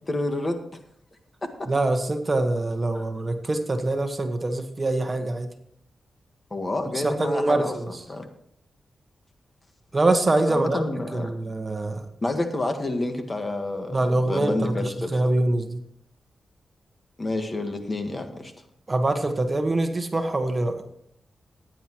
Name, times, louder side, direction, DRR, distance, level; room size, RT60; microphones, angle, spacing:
voice 1, 0.1-0.6 2.9-3.0 6.5-7.7 8.1-8.3 10.5-11.3 12.2-15.3 17.2-18.5, left 2 dB, 30° left, 6 dB, 1.6 m, -29 dB
voice 2, 1.7-5.5 6.9-7.9 9.9-10.8 11.1-12.0 13.9-15.8 18.9-20.8, right 2 dB, 30° right, 6 dB, 1.5 m, -24 dB
15.5 x 10.0 x 3.1 m, 0.69 s
cardioid pair, 90°, 0 cm